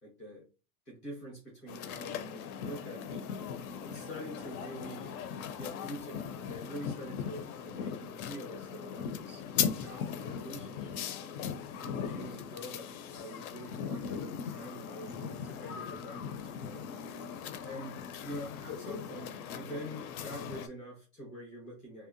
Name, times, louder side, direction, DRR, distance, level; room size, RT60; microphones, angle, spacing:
voice 1, 0.0-0.4 0.9-3.4 3.8-5.1 5.5-9.4 9.7-11.0 11.8-16.9 17.6-22.1, equal, 15° left, -4 dB, 0.3 m, -46 dB
sound 1, 1.7-20.7, left 7 dB, 65° left, 0.5 m, -39 dB
2.7 x 2.1 x 2.5 m, 0.31 s
supercardioid pair, 175°, 47 cm